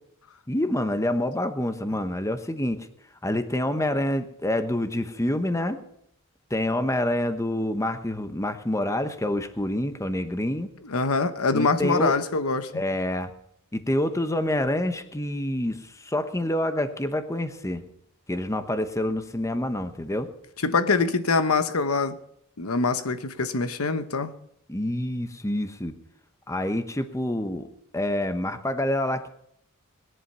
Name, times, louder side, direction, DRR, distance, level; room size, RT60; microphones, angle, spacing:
voice 1, 0.5-2.9 3.2-5.8 6.5-10.7 11.5-12.2 12.7-13.3 13.7-17.8 18.3-20.3 24.7-25.9 26.5-27.7 27.9-29.3, left 1 dB, 15° left, 1.0 m, -27 dB
voice 2, 10.8-12.8 20.6-22.2 22.6-24.3, left 4 dB, 85° left, 1.0 m, -24 dB
20.0 x 11.0 x 5.6 m
head